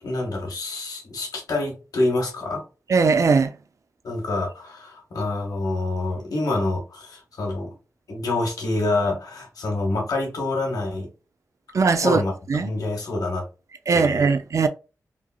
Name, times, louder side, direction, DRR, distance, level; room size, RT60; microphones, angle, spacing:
voice 1, 0.0-2.6 4.0-7.7 8.1-11.1 11.9-12.3 12.6-13.5 13.9-14.3, left 2 dB, 90° left, 1.1 m, -27 dB
voice 2, 2.9-3.5 11.7-12.2 12.5-12.7 13.9-14.7, right 5 dB, 55° right, 0.4 m, -19 dB
3.2 x 2.3 x 2.2 m
cardioid pair, 70°, 6 cm